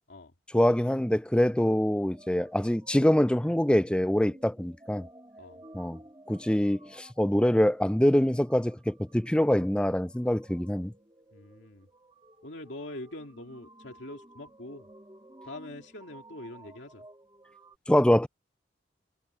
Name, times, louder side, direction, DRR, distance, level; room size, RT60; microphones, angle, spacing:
voice 1, 0.5-5.1 5.7-6.0 6.3-10.9 17.9-18.3, equal, 5° left, 0.4 m, -24 dB
sound 1, 2.1-17.8, right 1 dB, 20° right, 1.9 m, -54 dB
voice 2, 11.3-11.9 12.4-14.9 15.4-17.1, left 1 dB, 80° left, 2.3 m, -43 dB
head